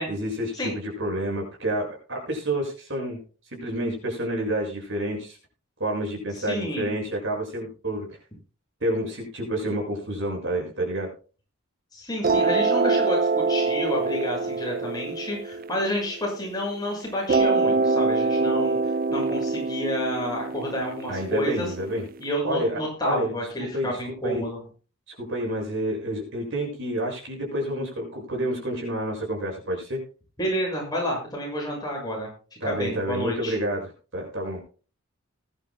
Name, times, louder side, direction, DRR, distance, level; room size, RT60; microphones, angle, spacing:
voice 1, 0.1-3.2 3.5-5.4 5.8-8.1 8.8-11.1 21.1-22.0 22.4-23.3 23.6-24.4 25.2-30.0 32.6-34.6, right 1 dB, 60° right, 0 dB, 6.6 m, -29 dB
voice 2, 6.4-7.0 11.9-21.7 22.2-24.6 30.4-32.3 32.6-33.6, equal, 20° left, -2 dB, 6.4 m, -30 dB
sound 1, 12.2-16.6 17.3-22.2, right 3 dB, 45° right, 0.5 m, -25 dB
21.0 x 11.0 x 2.2 m, 0.36 s
head